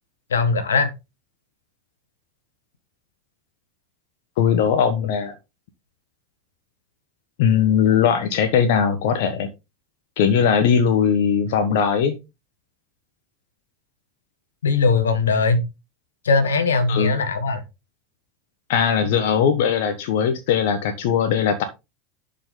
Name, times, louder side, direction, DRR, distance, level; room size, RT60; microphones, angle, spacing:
voice 1, 0.3-0.9 14.6-15.6 16.2-17.6, left 4 dB, 80° left, 1.5 m, -20 dB
voice 2, 4.4-5.3 7.4-9.5 10.2-12.1 16.9-17.1 18.7-21.6, left 7 dB, 65° left, 1.2 m, -19 dB
11.0 x 5.9 x 3.8 m
hypercardioid pair, 85°, 0 cm